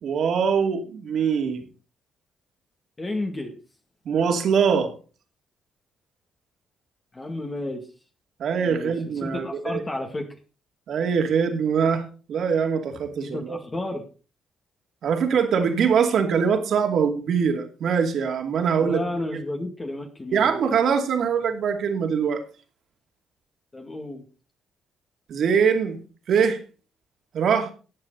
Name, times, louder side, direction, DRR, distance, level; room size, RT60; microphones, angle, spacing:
voice 1, 0.0-1.6 4.1-4.9 8.4-9.8 10.9-13.6 15.0-19.0 19.3-19.4 20.3-22.4 25.3-26.0 26.3-26.6 27.3-27.7, right 6 dB, 65° right, 5 dB, 2.6 m, -23 dB
voice 2, 3.0-3.6 7.1-7.9 8.6-8.9 9.2-10.3 13.2-14.0 18.8-20.5 23.7-24.2, left 2 dB, 25° left, 3 dB, 2.2 m, -31 dB
14.5 x 8.8 x 4.0 m, 0.35 s
cardioid pair, 90°, 0 cm